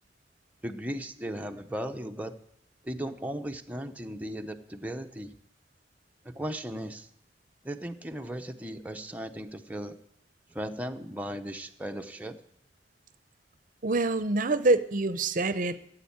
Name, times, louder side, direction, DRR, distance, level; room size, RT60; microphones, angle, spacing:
voice 1, 0.6-2.3 2.8-5.3 6.2-7.1 7.6-10.0 10.5-12.4, equal, 10° right, 5 dB, 0.8 m, -36 dB
voice 2, 13.8-15.9, right 2 dB, 45° right, 13 dB, 0.7 m, -26 dB
15.0 x 8.0 x 8.7 m, 0.74 s
head